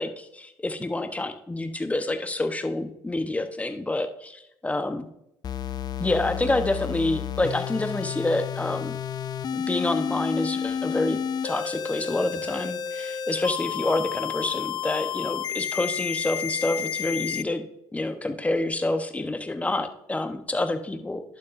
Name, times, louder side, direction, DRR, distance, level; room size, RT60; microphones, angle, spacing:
voice 1, 0.0-5.1 6.0-9.0 9.5-11.2 11.4-17.6 17.9-21.2, left 2 dB, 15° left, 8 dB, 1.0 m, -28 dB
sound 1, 5.4-17.4, left 8 dB, 40° left, 0.4 m, -31 dB
11.0 x 8.1 x 2.6 m, 0.81 s
hypercardioid pair, 70°, 10 cm